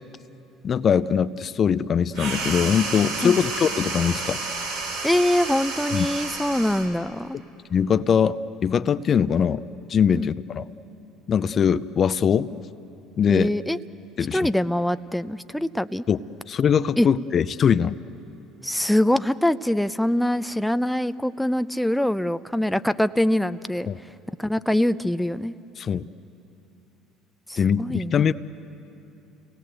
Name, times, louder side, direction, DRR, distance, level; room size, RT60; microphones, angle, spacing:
voice 1, 0.6-4.4 5.9-6.1 7.7-9.6 9.9-10.6 11.3-12.5 13.2-13.5 14.2-14.4 16.1-16.2 16.5-18.0 23.9-24.0 25.8-26.0 27.6-28.3, left 7 dB, 45° left, 15 dB, 0.6 m, -22 dB
sound 1, 2.1-6.9, right 3 dB, 75° right, 3.9 m, -30 dB
voice 2, 5.0-7.4 10.1-10.3 13.3-13.8 14.3-16.0 17.0-17.1 18.6-23.9 24.4-25.5 27.5-28.2, left 1 dB, 5° left, 12 dB, 0.5 m, -23 dB
29.5 x 18.5 x 7.9 m, 2.9 s
hypercardioid pair, 65°, 0 cm